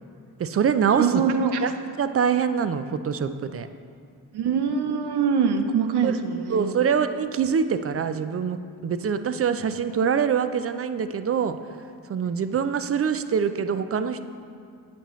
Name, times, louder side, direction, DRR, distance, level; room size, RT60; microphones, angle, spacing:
voice 1, 0.4-1.2 1.6-1.7 2.0-3.7 6.0-6.2 6.5-11.6 12.1-14.2, right 7 dB, 35° right, 10 dB, 0.4 m, -24 dB
voice 2, 1.0-1.6 4.3-6.7, right 6 dB, 65° right, 7 dB, 0.7 m, -23 dB
8.5 x 6.8 x 3.1 m, 2.3 s
cardioid pair, 65°, 42 cm